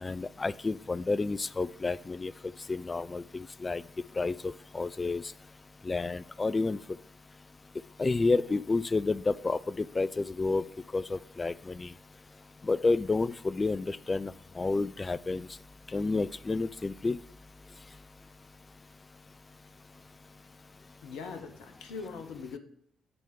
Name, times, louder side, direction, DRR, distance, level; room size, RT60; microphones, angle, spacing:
voice 1, 0.0-2.3 2.7-3.8 4.2-5.2 5.9-6.8 8.0-10.6 10.9-11.9 12.6-15.5 15.9-17.2, left 3 dB, 30° left, 18 dB, 0.3 m, -30 dB
voice 2, 21.0-22.6, left 5 dB, 70° left, 6 dB, 1.0 m, -41 dB
7.9 x 4.5 x 5.2 m, 0.66 s
figure-of-eight pair, 40°, 0 cm